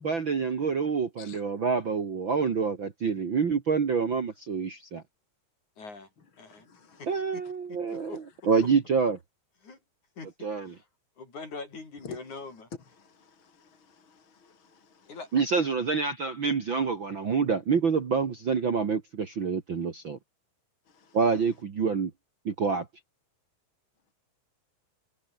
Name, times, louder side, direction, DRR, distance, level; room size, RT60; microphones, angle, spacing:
voice 1, 0.0-5.0 7.1-8.2 8.5-9.2 10.4-10.7 15.3-20.2 21.1-22.1 22.5-22.9, right 5 dB, 40° right, 2.1 m, -27 dB
voice 2, 5.8-6.1 6.4-6.7 7.0-7.4 7.7-8.2 9.6-9.8 10.2-10.8 11.2-12.7 15.1-15.3, left 4 dB, 55° left, 7.8 m, -43 dB
voice 3, 6.4-7.2 7.9-8.1 12.0-12.2 13.0-15.2 20.9-21.2, left 5 dB, 35° left, 3.5 m, -51 dB
omnidirectional pair, 4.1 m